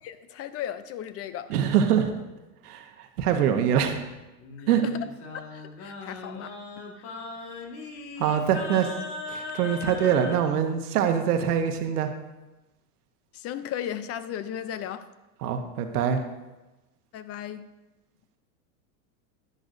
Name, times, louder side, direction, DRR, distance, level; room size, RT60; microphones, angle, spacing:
voice 1, 0.0-1.5 4.6-5.1 5.3-6.6 7.0-7.1 13.3-15.1 17.1-17.7, left 10 dB, 35° left, 0.5 m, -36 dB
voice 2, 1.5-2.1 2.6-4.0 4.7-4.8 8.2-8.9 9.3-12.1 15.4-16.2, right 8 dB, 85° right, 1.2 m, -24 dB
Singing, 4.4-10.4, left 3 dB, 55° left, 1.8 m, -39 dB
10.5 x 10.5 x 2.6 m
hypercardioid pair, 105°, 45 cm